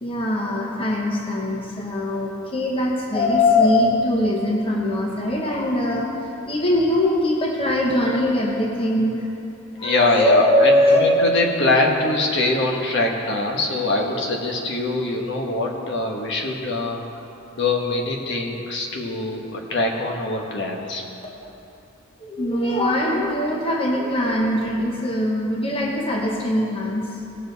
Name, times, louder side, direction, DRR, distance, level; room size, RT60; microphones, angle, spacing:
voice 1, 0.0-6.1 6.4-9.3 9.8-11.1 21.2-21.3 22.2-27.1, left 1 dB, 25° left, -1 dB, 1.0 m, -21 dB
voice 2, 9.8-17.0 17.5-21.0, left 2 dB, 60° left, 0 dB, 1.3 m, -23 dB
18.0 x 7.1 x 4.0 m, 2.9 s
head